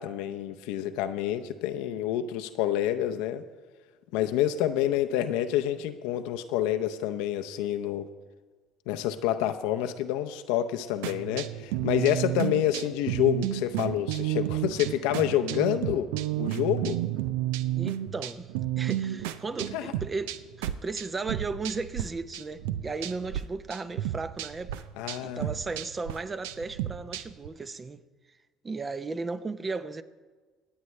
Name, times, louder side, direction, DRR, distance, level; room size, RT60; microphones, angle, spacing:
voice 1, 0.0-3.4 4.1-8.1 8.9-16.1 16.4-17.0 19.7-19.9 25.0-25.5, left 11 dB, 75° left, 0.6 m, -28 dB
sound 1, 11.0-22.1 22.3-23.4 23.7-27.5, right 13 dB, 80° right, 0.5 m, -32 dB
voice 2, 17.7-24.8 25.2-28.0 28.6-30.0, right 4 dB, 25° right, 0.7 m, -35 dB
24.0 x 8.1 x 3.2 m
supercardioid pair, 80°, 0 cm